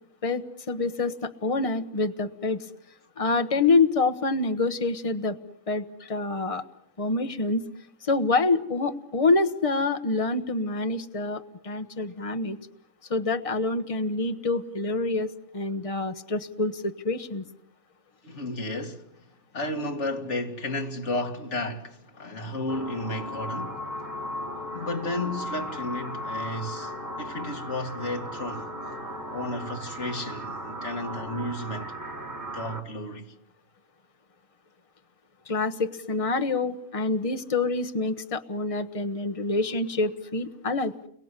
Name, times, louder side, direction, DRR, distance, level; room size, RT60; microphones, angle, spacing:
voice 1, 0.2-2.7 3.2-5.4 5.7-6.6 7.0-7.6 8.0-12.6 13.1-17.4 35.5-40.9, left 3 dB, 25° left, 1.3 m, -26 dB
voice 2, 18.2-19.1 19.5-23.9 24.7-26.9 27.2-28.7 29.3-31.9 32.5-33.3, left 1 dB, 60° left, 2.5 m, -33 dB
sound 1, 22.7-32.8, equal, 15° right, 4.1 m, -36 dB
30.0 x 23.5 x 8.3 m
omnidirectional pair, 1.3 m